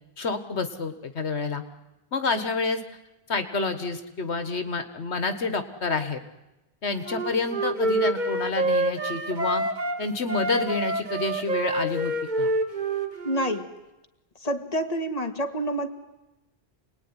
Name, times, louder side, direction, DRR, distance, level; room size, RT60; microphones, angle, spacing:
voice 1, 0.2-1.6 2.1-2.8 3.3-6.2 6.8-9.6 10.0-12.5, left 3 dB, 85° left, 8 dB, 1.9 m, -28 dB
Wind instrument woodwind instrument, 7.0-10.0 10.3-13.6, right 1 dB, 45° right, 2.1 m, -27 dB
voice 2, 13.2-13.7 14.4-15.9, right 1 dB, 35° left, 5 dB, 2.1 m, -28 dB
28.0 x 20.0 x 9.9 m, 0.98 s
omnidirectional pair, 1.1 m